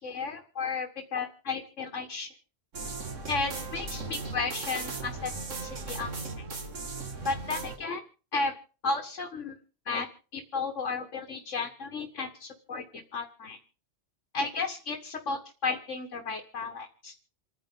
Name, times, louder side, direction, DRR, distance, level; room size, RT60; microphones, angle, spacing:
voice 1, 0.0-2.3 3.3-5.3 5.6-6.1 6.4-6.5 7.3-8.0 8.3-8.5 8.8-9.6 9.9-10.1 10.3-13.6 14.3-17.1, left 4 dB, 80° left, 4 dB, 1.9 m, -33 dB
sound 1, 2.7-7.8, right 3 dB, 90° right, 2.3 m, -37 dB
28.5 x 10.5 x 3.7 m, 0.37 s
omnidirectional pair, 1.2 m